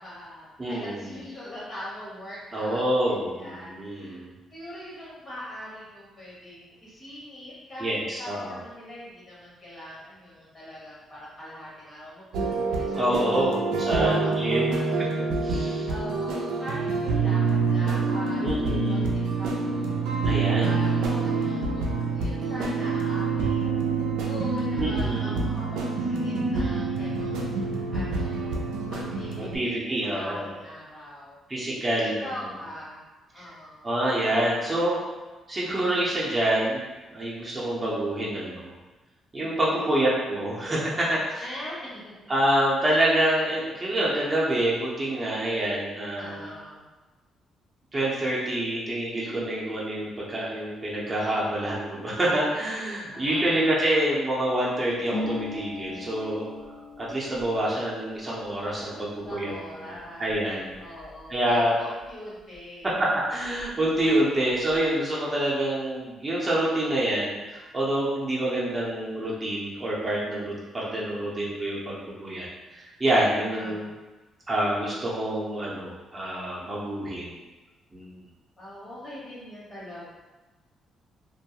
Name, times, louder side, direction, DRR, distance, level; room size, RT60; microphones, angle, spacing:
voice 1, 0.0-4.2 4.5-13.3 14.0-15.1 15.9-18.6 18.9-23.7 24.2-28.5 28.9-31.4 32.0-33.0 33.3-33.9 39.7-39.8 41.4-42.3 46.1-46.8 53.1-53.7 59.2-60.3 60.8-62.9 64.0-64.4 73.6-73.9 78.6-80.1, left 1 dB, 40° left, -7 dB, 1.1 m, -42 dB
voice 2, 0.6-1.1 2.5-4.3 7.8-8.6 13.0-14.8 15.4-15.9 18.4-19.1 20.2-20.8 24.8-25.4 29.4-30.5 31.5-32.2 33.8-35.0 35.5-36.8 37.1-38.7 39.3-41.4 42.3-46.5 47.9-56.4 57.0-59.9 60.2-60.8 61.3-61.8 63.0-73.9 74.5-77.4 77.9-78.1, right 1 dB, 25° right, -6 dB, 0.6 m, -27 dB
sound 1, 12.3-29.6, right 4 dB, 90° right, 0.3 m, -26 dB
Harp, 55.1-62.6 62.8-64.0 64.2-64.9, left 2 dB, 85° left, 0.7 m, -41 dB
2.3 x 2.1 x 2.8 m, 1.2 s
cardioid pair, 90°, 0 cm